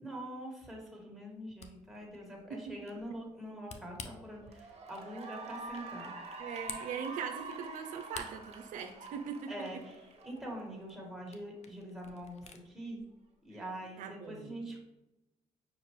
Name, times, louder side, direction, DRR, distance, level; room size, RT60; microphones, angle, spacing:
voice 1, 0.0-6.2 9.5-13.0 13.4-14.8, right 1 dB, ahead, -2 dB, 1.5 m, -44 dB
Camera, 1.3-12.7, left 5 dB, 55° left, 0.6 m, -53 dB
Cheering / Applause, 3.7-4.0 4.4-10.9, right 3 dB, 50° right, 0.9 m, -46 dB
voice 2, 6.4-9.5 13.5-13.6 14.0-14.6, right 6 dB, 75° right, 5 dB, 0.5 m, -41 dB
5.7 x 2.5 x 3.1 m, 0.95 s
supercardioid pair, 60°, 14 cm